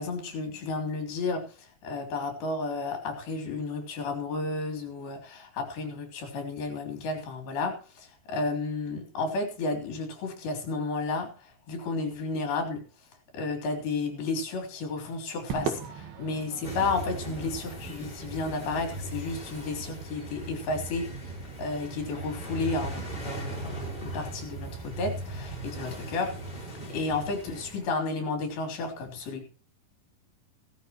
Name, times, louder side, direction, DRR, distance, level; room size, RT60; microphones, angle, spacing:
voice 1, 0.0-12.8 13.3-21.1 21.6-29.4, left 3 dB, 70° left, 4 dB, 5.1 m, -32 dB
Crowd / Fireworks, 15.5-20.0, right 6 dB, 70° right, 3.6 m, -39 dB
sound 1, 16.6-27.8, right 2 dB, 25° left, 5.8 m, -38 dB
16.5 x 13.0 x 3.1 m, 0.37 s
omnidirectional pair, 4.6 m